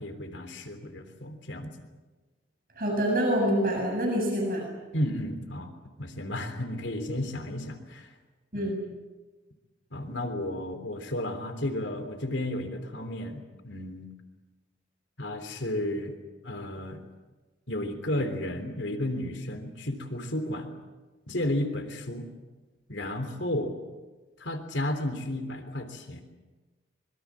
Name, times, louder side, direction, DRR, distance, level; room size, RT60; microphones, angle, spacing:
voice 1, 0.0-1.7 4.9-5.7 6.0-8.1 8.5-8.7 9.9-14.1 15.2-16.2 16.4-17.0 17.7-20.7 21.3-22.3 22.9-23.7 24.4-26.2, left 1 dB, 85° left, 7 dB, 3.4 m, -33 dB
voice 2, 2.8-4.7 8.5-8.8, equal, 50° right, 0 dB, 7.2 m, -26 dB
25.5 x 23.0 x 7.5 m, 1.2 s
head